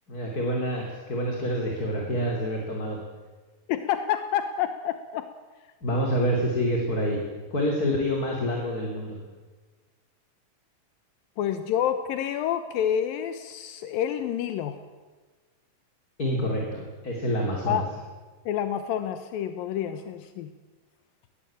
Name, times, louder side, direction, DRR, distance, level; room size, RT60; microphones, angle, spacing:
voice 1, 0.1-3.0 5.8-7.2 7.5-9.2 16.2-17.8, equal, 25° left, 0 dB, 3.4 m, -27 dB
voice 2, 3.7-5.3 11.4-14.8 17.7-17.8 18.5-20.5, left 10 dB, 85° left, 9 dB, 2.7 m, -28 dB
20.5 x 20.0 x 8.9 m, 1.3 s
omnidirectional pair, 4.1 m